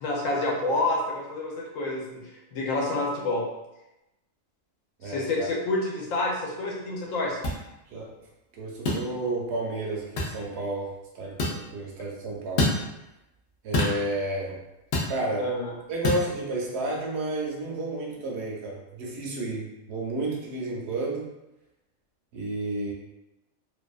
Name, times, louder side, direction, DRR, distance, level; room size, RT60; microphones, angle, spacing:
voice 1, 0.0-3.4 5.0-7.4 15.4-15.7, left 2 dB, 85° left, -2 dB, 1.0 m, -28 dB
voice 2, 5.0-5.5 7.9-8.1 8.6-12.7 13.6-14.6 15.1-15.5 15.9-21.3 22.3-22.9, right 2 dB, 65° right, -2 dB, 0.8 m, -31 dB
sound 1, 7.4-7.6 8.9-9.0 10.2-10.4 11.4-11.6 12.6-12.8 13.7-14.0 14.9-15.1 16.0-16.2, left 2 dB, 60° left, 0.7 m, -25 dB
2.6 x 2.2 x 2.3 m, 0.93 s
omnidirectional pair, 1.3 m